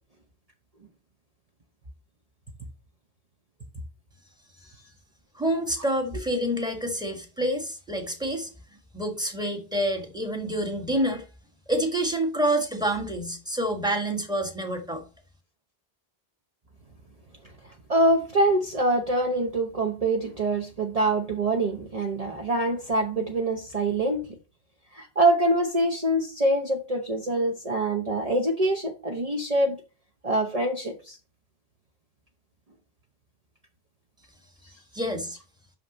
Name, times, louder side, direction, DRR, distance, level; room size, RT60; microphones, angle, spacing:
voice 1, 5.3-8.5 8.9-11.2 11.7-15.0 34.9-35.4, right 1 dB, 5° right, 1.5 m, -27 dB
voice 2, 17.6-24.2 24.9-29.8 30.2-31.2, right 1 dB, 40° right, 1.0 m, -25 dB
6.0 x 5.8 x 5.2 m
omnidirectional pair, 1.0 m